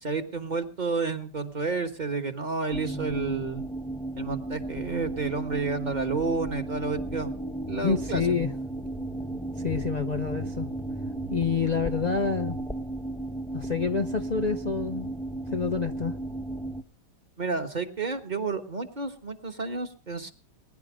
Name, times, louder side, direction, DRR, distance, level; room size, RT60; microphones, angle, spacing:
voice 1, 0.0-3.6 4.2-7.4 7.7-8.4 17.4-20.3, right 4 dB, 30° right, 6 dB, 1.3 m, -30 dB
sound 1, 2.7-16.8, right 2 dB, 5° left, 0.6 m, -34 dB
voice 2, 7.8-8.5 9.6-10.7 11.3-12.6 13.5-15.1 15.5-16.1, left 5 dB, 80° left, 6 dB, 0.3 m, -28 dB
20.5 x 10.5 x 5.0 m, 0.39 s
omnidirectional pair, 1.9 m